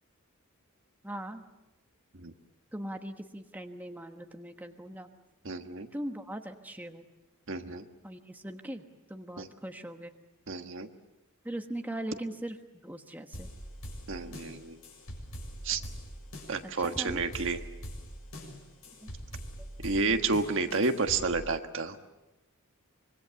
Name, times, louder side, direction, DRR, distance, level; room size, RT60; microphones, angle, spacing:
voice 1, 1.0-1.4 2.7-5.1 5.9-7.0 8.0-10.1 11.4-12.6 12.8-13.5 14.3-14.4 16.6-17.4 19.0-19.1, right 1 dB, 10° right, 5 dB, 1.3 m, -40 dB
voice 2, 5.4-5.9 7.5-7.8 9.4-9.5 10.5-10.9 14.1-14.8 15.6-15.8 16.5-17.6 19.8-22.0, right 4 dB, 60° right, 6 dB, 1.5 m, -30 dB
sound 1, 13.3-21.3, equal, 80° left, 7.0 m, -43 dB
25.5 x 23.5 x 7.0 m, 1.0 s
head